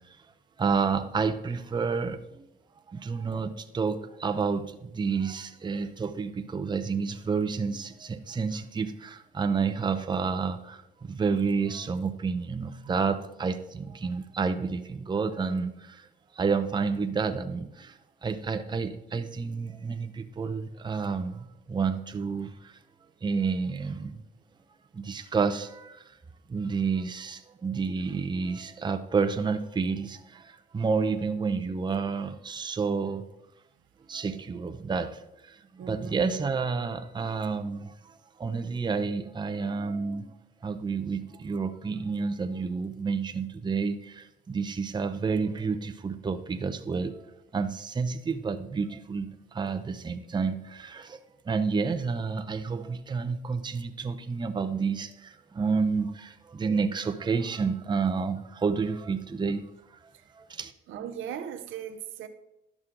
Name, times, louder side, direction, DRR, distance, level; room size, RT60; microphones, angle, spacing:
voice 1, 0.6-2.5 2.9-16.1 16.3-22.8 23.2-24.2 24.9-26.2 26.5-33.3 34.1-40.3 40.6-47.2 47.5-51.2 51.4-59.7 60.3-60.7, right 5 dB, 20° right, 0.6 m, -30 dB
voice 2, 35.8-36.2 60.9-62.3, right 9 dB, 80° right, 0.8 m, -38 dB
11.0 x 6.1 x 3.8 m
cardioid pair, 90°, 20 cm